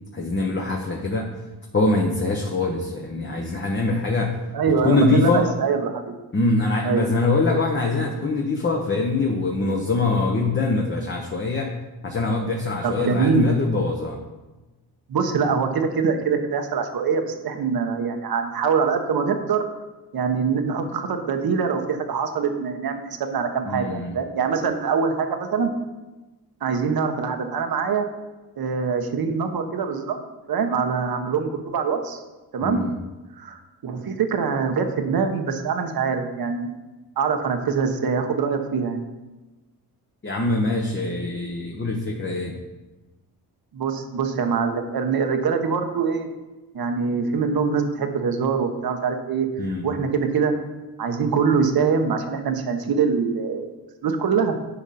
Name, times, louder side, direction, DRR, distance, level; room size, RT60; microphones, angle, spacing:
voice 1, 0.1-1.3 1.7-4.3 4.8-5.5 6.3-11.7 12.0-14.2 23.6-24.1 32.6-32.9 40.2-42.5 49.6-49.8, left 3 dB, 30° left, 0 dB, 1.1 m, -23 dB
voice 2, 4.5-6.1 6.8-7.0 12.8-13.5 15.1-19.6 20.1-25.7 26.6-28.0 28.6-30.2 30.5-32.2 32.5-32.8 33.4-36.7 37.2-39.0 43.7-46.3 46.7-50.5 51.0-53.7 54.0-54.5, right 5 dB, 60° right, 6 dB, 1.1 m, -24 dB
9.9 x 5.1 x 4.2 m, 1.1 s
cardioid pair, 70°, 41 cm